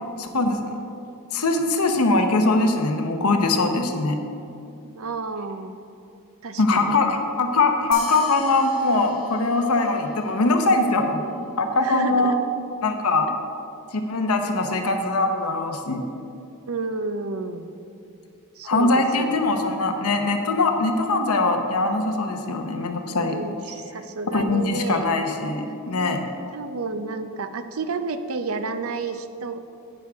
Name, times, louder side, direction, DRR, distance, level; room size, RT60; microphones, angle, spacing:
voice 1, 0.2-0.6 1.3-4.2 6.6-11.2 11.6-12.3 12.8-13.3 13.9-16.0 18.6-23.4 24.3-26.2, left 2 dB, 80° left, 5 dB, 0.9 m, -22 dB
voice 2, 4.8-5.7 6.4-7.0 11.8-12.4 16.7-17.7 18.6-18.9 19.2-19.4 23.2-25.1 25.9-26.2 26.5-29.6, right 3 dB, 70° right, 9 dB, 0.6 m, -31 dB
sound 1, 7.9-10.7, left 6 dB, 60° left, 1.1 m, -41 dB
12.0 x 9.0 x 3.5 m, 2.5 s
head